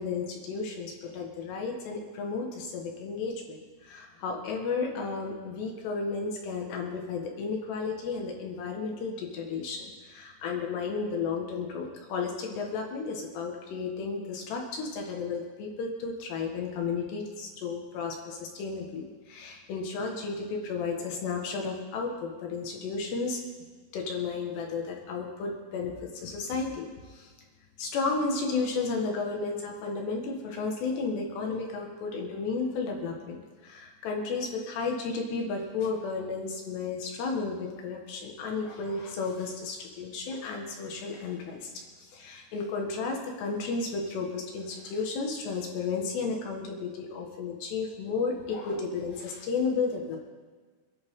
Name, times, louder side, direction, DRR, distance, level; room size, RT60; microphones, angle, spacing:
voice 1, 0.0-23.4 23.9-27.3 27.8-41.7 42.0-50.2, left 4 dB, 65° left, 1 dB, 3.4 m, -33 dB
27.0 x 11.0 x 3.8 m, 1.5 s
omnidirectional pair, 5.9 m